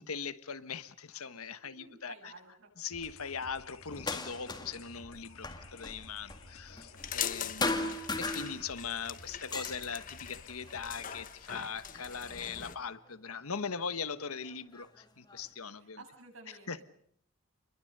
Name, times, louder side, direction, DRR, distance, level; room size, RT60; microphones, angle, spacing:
voice 1, 0.0-2.3 2.8-16.0 16.7-16.8, left 6 dB, 85° left, 1.3 m, -40 dB
voice 2, 1.6-2.7 7.3-8.0 15.7-16.8, right 3 dB, 70° right, 7.6 m, -54 dB
sound 1, 2.9-11.2, left 3 dB, 70° left, 2.1 m, -54 dB
sound 2, 3.9-4.9 5.1-7.3 7.6-9.0 9.3-11.2 11.9-12.8 13.7-13.8 14.4-15.5, left 2 dB, 20° left, 2.0 m, -38 dB
sound 3, 7.0-12.8, left 9 dB, 40° left, 1.2 m, -42 dB
29.5 x 22.0 x 6.7 m
head